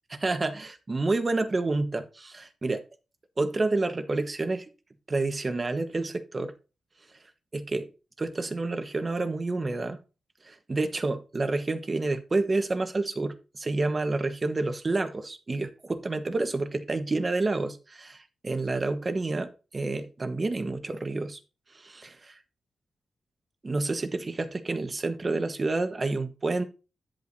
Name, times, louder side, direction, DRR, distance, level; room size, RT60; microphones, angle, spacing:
voice 1, 0.1-2.8 3.4-4.7 5.1-6.5 7.5-7.9 8.2-10.0 10.4-21.4 21.7-22.3 23.6-26.6, right 3 dB, 35° right, 1.2 m, -29 dB
10.0 x 8.4 x 2.7 m
cardioid pair, 80°, 0 cm